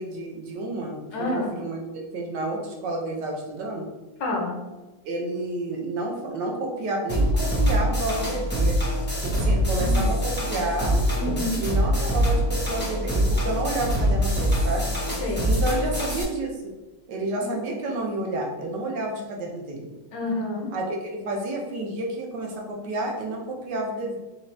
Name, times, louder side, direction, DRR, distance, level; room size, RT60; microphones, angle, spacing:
voice 1, 0.0-3.9 5.0-8.8 9.2-11.0 11.6-14.9 15.4-16.7 17.1-19.9 20.7-24.2, right 2 dB, 65° right, 0 dB, 1.4 m, -30 dB
voice 2, 1.1-1.5 4.2-4.6 9.8-10.1 11.1-11.6 15.2-15.5 17.4-17.5 20.1-20.7, left 2 dB, 65° left, 0 dB, 1.4 m, -28 dB
sound 1, 7.1-16.2, equal, 10° left, 0.7 m, -24 dB
6.4 x 2.3 x 3.3 m, 1.1 s
omnidirectional pair, 2.3 m